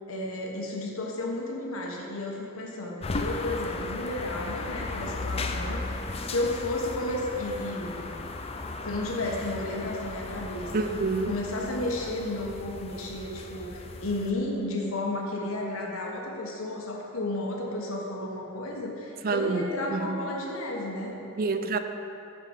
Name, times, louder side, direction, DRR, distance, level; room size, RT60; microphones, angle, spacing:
voice 1, 0.1-8.0 8.8-10.7 11.2-21.2, left 1 dB, 80° left, -1 dB, 1.5 m, -32 dB
sound 1, 3.0-14.3, left 3 dB, 30° left, 0.5 m, -36 dB
voice 2, 10.7-11.3 19.2-19.6 19.9-20.2 21.4-21.8, right 4 dB, 45° right, 8 dB, 0.4 m, -27 dB
7.1 x 6.0 x 7.2 m, 2.8 s
head